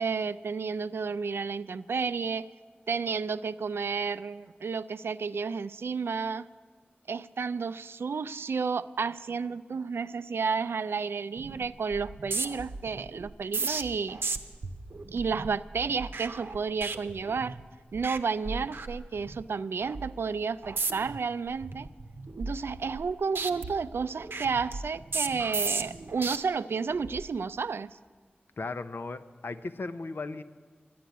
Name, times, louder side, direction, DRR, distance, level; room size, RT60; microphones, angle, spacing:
voice 1, 0.0-2.5 2.9-6.5 7.1-14.2 15.1-17.6 17.9-21.9 22.4-28.0, right 5 dB, 90° right, 14 dB, 0.4 m, -31 dB
sound 1, 11.4-11.6 11.9-17.6 17.9-18.2 18.5-19.4 19.8-20.1 20.6-21.2 21.6-23.1 23.4-26.4 26.9-27.2, right 3 dB, 70° right, 0.7 m, -35 dB
voice 2, 28.6-30.4, left 3 dB, 65° left, 11 dB, 0.6 m, -36 dB
11.5 x 10.0 x 9.3 m, 1.5 s
wide cardioid pair, 70°, 4 cm